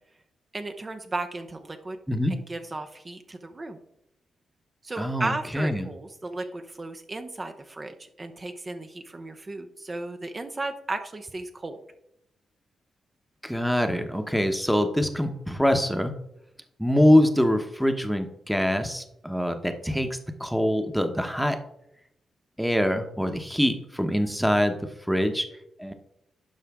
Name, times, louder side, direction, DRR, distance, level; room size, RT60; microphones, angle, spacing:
voice 1, 0.5-2.0 2.3-3.8 4.8-11.8, right 2 dB, 35° right, 6 dB, 0.8 m, -35 dB
voice 2, 5.0-5.9 13.4-16.2 16.8-21.6 22.6-25.5 25.8-25.9, equal, ahead, 7 dB, 1.0 m, -24 dB
11.5 x 5.1 x 3.6 m, 0.80 s
cardioid pair, 60°, 0 cm